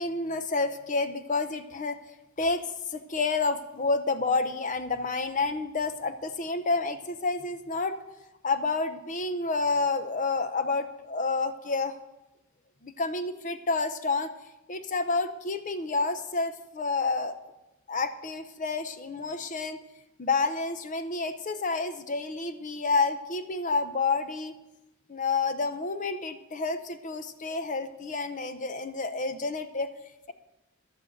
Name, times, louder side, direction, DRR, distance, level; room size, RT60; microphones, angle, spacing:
voice 1, 0.0-2.0 2.4-8.0 8.4-12.0 12.8-14.3 14.7-17.4 17.9-19.8 20.2-24.5 25.1-29.9, left 3 dB, 40° left, 10 dB, 0.7 m, -29 dB
11.5 x 8.1 x 7.9 m, 0.98 s
head